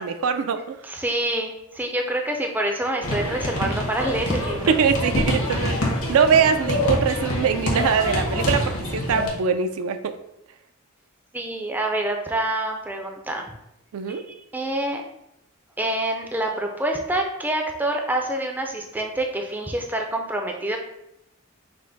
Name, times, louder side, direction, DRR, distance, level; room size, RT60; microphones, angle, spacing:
voice 1, 0.0-0.8 4.7-10.2 13.9-14.2, right 6 dB, 75° right, 9 dB, 0.4 m, -22 dB
voice 2, 0.9-4.7 5.5-5.6 11.3-13.5 14.1-15.0 15.8-20.8, right 1 dB, 10° right, 2 dB, 0.4 m, -27 dB
sound 1, 3.0-9.3, left 1 dB, 80° left, 1.2 m, -26 dB
5.3 x 2.1 x 3.9 m, 0.84 s
head